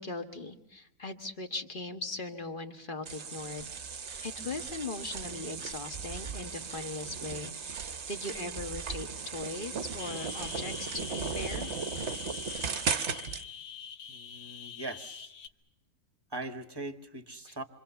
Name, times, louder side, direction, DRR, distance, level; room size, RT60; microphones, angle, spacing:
voice 1, 0.0-11.7 17.5-17.6, left 2 dB, 30° left, 6 dB, 1.8 m, -40 dB
sound 1, 3.1-13.4, right 5 dB, 45° right, 1.2 m, -37 dB
sound 2, 10.0-15.5, left 8 dB, 85° left, 1.8 m, -44 dB
voice 2, 14.1-15.3 16.3-17.6, right 2 dB, 15° right, 9 dB, 1.3 m, -41 dB
27.5 x 25.5 x 7.0 m, 0.86 s
omnidirectional pair, 1.9 m